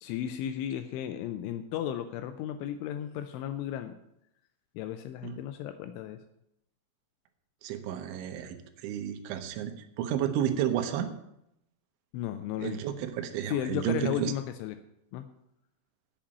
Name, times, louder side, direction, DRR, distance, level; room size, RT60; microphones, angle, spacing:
voice 1, 0.0-3.9 4.8-6.2 12.1-12.8 13.5-14.8 15.1-15.3, left 10 dB, 85° left, 9 dB, 2.9 m, -34 dB
voice 2, 7.6-11.1 12.6-14.3, right 10 dB, 75° right, 8 dB, 3.2 m, -32 dB
8.9 x 7.4 x 8.8 m, 0.80 s
omnidirectional pair, 5.9 m